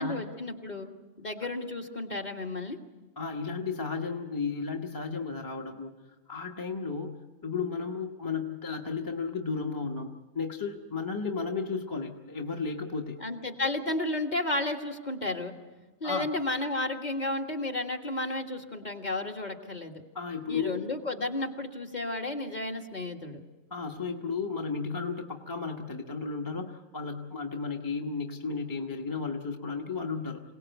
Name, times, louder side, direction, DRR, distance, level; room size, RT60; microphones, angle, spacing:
voice 1, 0.0-2.8 13.2-15.5 16.0-20.0 20.5-23.4, left 2 dB, 35° left, 2 dB, 1.8 m, -32 dB
voice 2, 3.2-5.9 6.3-13.2 16.0-16.3 20.1-20.9 23.7-30.4, left 5 dB, 15° left, 2 dB, 1.1 m, -34 dB
27.0 x 18.0 x 8.0 m, 1.2 s
omnidirectional pair, 1.4 m